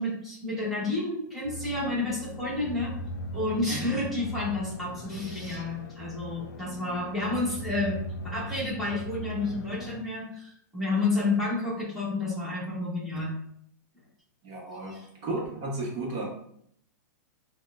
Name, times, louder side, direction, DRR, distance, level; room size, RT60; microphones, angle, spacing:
voice 1, 0.0-2.9 3.3-8.0 8.2-13.3 14.8-15.0, left 2 dB, ahead, -8 dB, 1.2 m, -30 dB
sound 1, 1.4-10.0, left 1 dB, 70° left, 0.5 m, -39 dB
voice 2, 14.4-16.3, right 2 dB, 30° right, -3 dB, 1.0 m, -34 dB
6.1 x 2.1 x 2.4 m, 0.68 s
supercardioid pair, 170°, 10 cm